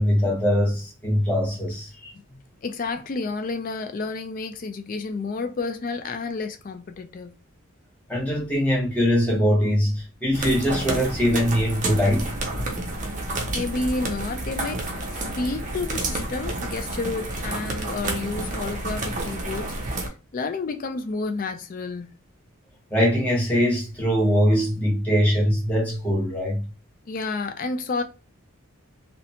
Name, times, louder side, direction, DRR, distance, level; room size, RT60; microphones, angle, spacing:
voice 1, 0.0-2.1 8.1-12.3 22.9-26.7, equal, 5° left, 0.9 m, -22 dB
voice 2, 2.6-7.3 13.5-22.1 27.1-28.0, left 3 dB, 40° left, 0.3 m, -30 dB
sound 1, 10.3-20.1, right 2 dB, 35° right, 0.5 m, -30 dB
2.8 x 2.1 x 2.7 m
head